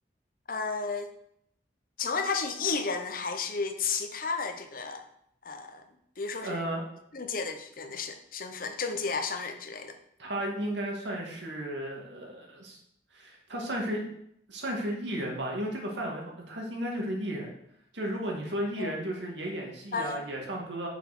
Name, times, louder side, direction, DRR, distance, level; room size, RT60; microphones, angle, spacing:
voice 1, 0.5-1.1 2.0-5.0 5.4-5.8 6.2-6.6 7.1-10.0 18.8-18.9 19.9-20.2, left 4 dB, 50° left, 7 dB, 0.9 m, -32 dB
voice 2, 6.4-6.8 10.2-12.8 13.1-14.1 14.5-17.5 17.9-20.9, right 1 dB, 85° right, -1 dB, 2.3 m, -34 dB
6.3 x 5.9 x 6.0 m, 0.73 s
head